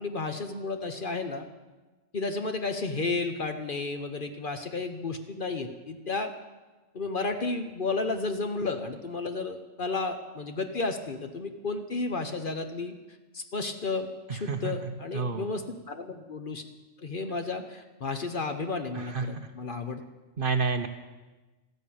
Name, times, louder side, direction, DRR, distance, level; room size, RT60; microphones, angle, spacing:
voice 1, 0.0-1.5 2.1-6.3 6.9-12.9 13.3-16.6 17.0-20.0, left 3 dB, 45° left, 7 dB, 1.0 m, -32 dB
voice 2, 14.3-15.5 18.9-19.5 20.4-20.9, right 4 dB, 45° right, 8 dB, 0.9 m, -30 dB
14.0 x 11.0 x 8.6 m, 1.2 s
omnidirectional pair, 1.4 m